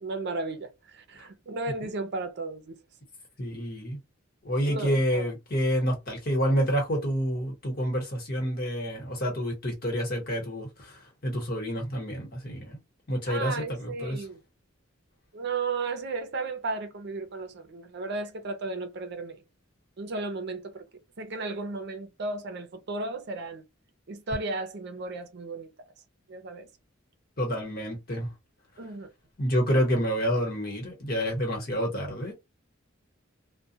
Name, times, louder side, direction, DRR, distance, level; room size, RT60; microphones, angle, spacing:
voice 1, 0.0-2.8 4.7-5.3 13.3-14.4 15.3-19.4 20.0-20.8 21.2-23.6 24.1-25.7 26.3-26.7 28.8-29.1, right 3 dB, 55° right, 0.5 m, -34 dB
voice 2, 3.4-4.0 4.4-12.8 13.1-14.2 27.4-28.3 29.4-32.3, equal, 50° left, 1.2 m, -28 dB
2.3 x 2.2 x 2.7 m
head